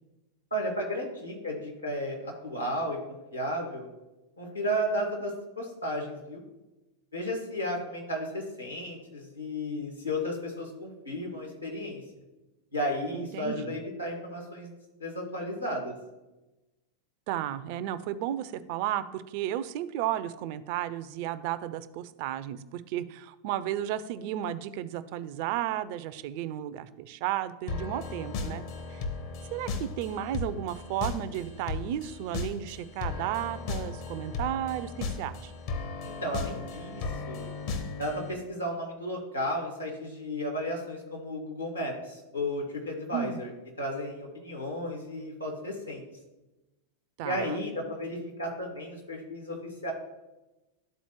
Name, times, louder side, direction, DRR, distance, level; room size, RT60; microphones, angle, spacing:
voice 1, 0.5-3.9 4.4-6.4 7.1-12.0 12.7-14.7 15.0-15.9 36.0-37.5 38.0-43.5 43.8-46.0 47.2-49.9, equal, 85° left, 0 dB, 1.7 m, -33 dB
voice 2, 13.1-13.8 17.3-28.6 28.9-29.0 29.5-35.5 43.1-43.4 47.2-47.6, right 12 dB, 45° right, 14 dB, 0.4 m, -33 dB
sound 1, 27.7-38.3, left 4 dB, 50° left, 0.8 m, -36 dB
12.0 x 4.1 x 3.0 m, 1.0 s
figure-of-eight pair, 90°, 0 cm